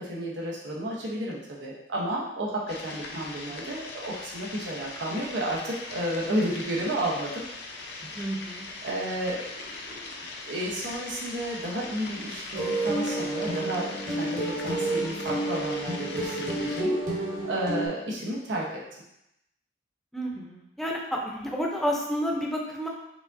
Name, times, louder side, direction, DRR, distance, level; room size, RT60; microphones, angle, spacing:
voice 1, 0.0-7.3 8.8-10.1 10.5-18.7, right 1 dB, 90° right, -4 dB, 0.9 m, -32 dB
sound 1, 2.7-16.8, left 3 dB, 60° left, 0.6 m, -40 dB
voice 2, 8.1-8.7 20.1-22.9, equal, ahead, -2 dB, 0.6 m, -30 dB
sound 2, 12.5-17.9, right 1 dB, 45° right, 1.1 m, -30 dB
4.9 x 3.6 x 2.6 m, 0.84 s
head